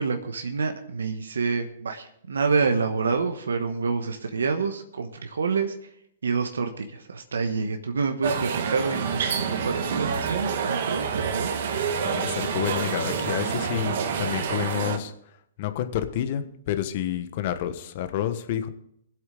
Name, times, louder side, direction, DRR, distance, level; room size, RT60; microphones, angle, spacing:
voice 1, 0.0-5.7 6.2-11.5, right 4 dB, 85° right, 6 dB, 1.2 m, -27 dB
sound 1, 8.2-15.0, right 6 dB, 60° right, 1.5 m, -27 dB
voice 2, 12.0-15.1 15.6-18.7, left 11 dB, 50° left, 10 dB, 1.2 m, -29 dB
21.0 x 8.0 x 3.9 m, 0.74 s
hypercardioid pair, 130°, 0 cm